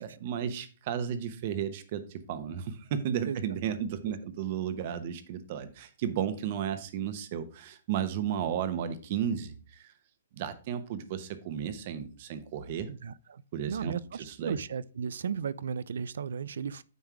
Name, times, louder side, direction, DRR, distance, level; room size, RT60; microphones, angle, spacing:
voice 1, 0.0-9.9 10.3-12.9 13.5-13.9 14.3-14.6, right 9 dB, 40° right, 1.0 m, -33 dB
voice 2, 12.9-13.4 13.7-16.8, right 7 dB, 75° right, 0.3 m, -35 dB
9.3 x 3.5 x 4.7 m
hypercardioid pair, 155°, 0 cm